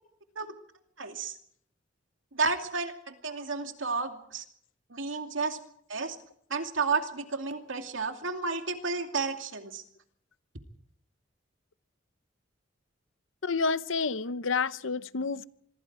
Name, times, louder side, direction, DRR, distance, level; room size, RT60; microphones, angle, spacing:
voice 1, 1.0-1.4 2.3-4.4 4.9-5.6 5.9-6.2 6.5-9.8, right 4 dB, 85° right, 2.5 m, -32 dB
voice 2, 13.4-15.5, left 4 dB, 85° left, 0.8 m, -29 dB
26.0 x 22.0 x 4.9 m
head